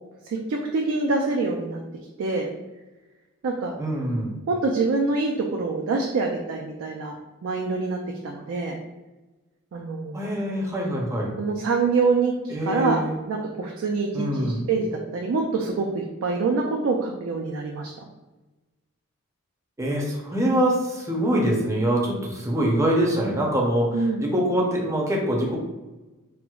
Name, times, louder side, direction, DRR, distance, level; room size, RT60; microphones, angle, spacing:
voice 1, 0.3-1.8 2.2-2.5 3.4-3.7 4.5-7.2 7.4-8.8 9.7-10.3 11.4-18.0 23.9-24.2, right 3 dB, 65° right, 1 dB, 0.3 m, -25 dB
voice 2, 3.8-4.4 10.1-11.3 12.5-13.2 14.1-14.6 19.8-25.6, right 1 dB, 15° right, -2 dB, 0.5 m, -24 dB
4.3 x 2.0 x 2.3 m, 1.1 s
head